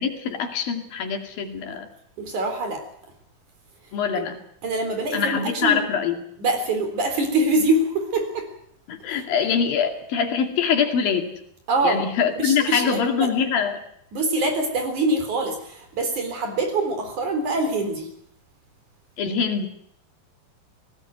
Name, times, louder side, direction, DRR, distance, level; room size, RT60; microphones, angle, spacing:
voice 1, 0.0-1.9 3.9-4.4 5.1-6.2 8.9-11.4 11.8-13.8 19.2-19.7, left 6 dB, 75° left, 5 dB, 4.2 m, -24 dB
voice 2, 2.2-2.8 4.1-4.2 4.6-5.8 6.4-8.5 9.1-9.2 11.7-12.0 12.4-13.3 14.1-18.1, right 2 dB, 55° right, 5 dB, 5.2 m, -24 dB
18.5 x 18.0 x 9.3 m, 0.69 s
omnidirectional pair, 4.2 m